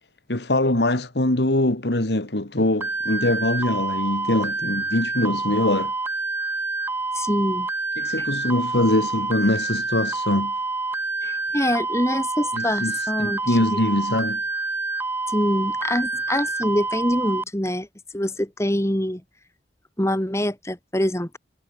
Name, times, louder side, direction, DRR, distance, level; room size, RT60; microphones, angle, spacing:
voice 1, 0.3-5.9 8.0-10.5 12.5-12.9 13.2-14.4, left 1 dB, 75° left, 2.2 m, -23 dB
sound 1, 2.8-17.4, right 3 dB, 15° right, 0.5 m, -27 dB
voice 2, 7.1-7.7 8.2-8.3 11.2-13.8 15.3-17.9 18.1-19.2 20.0-21.4, left 1 dB, 15° left, 1.9 m, -25 dB
head